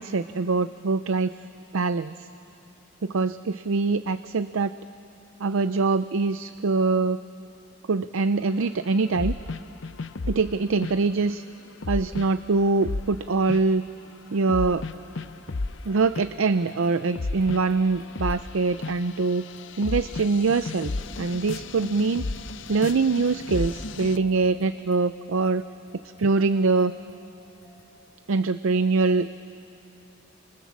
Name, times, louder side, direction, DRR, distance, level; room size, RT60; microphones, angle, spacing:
voice 1, 0.0-1.3 1.7-2.3 3.0-4.7 5.4-7.2 7.9-9.3 10.2-11.4 11.9-13.8 14.3-14.8 15.9-19.4 19.8-20.9 21.2-22.3 22.7-25.6 26.2-26.9 28.3-29.4, right 4 dB, 75° right, 12 dB, 0.5 m, -23 dB
sound 1, 9.2-10.5 10.8-11.0 11.8-12.3 12.8-13.8 14.5-15.8 16.2-16.6 16.9-24.2, left 3 dB, 60° left, 0.6 m, -33 dB
sound 2, 14.7-28.1, equal, 85° left, 5.9 m, -56 dB
29.5 x 27.5 x 7.4 m, 2.9 s
head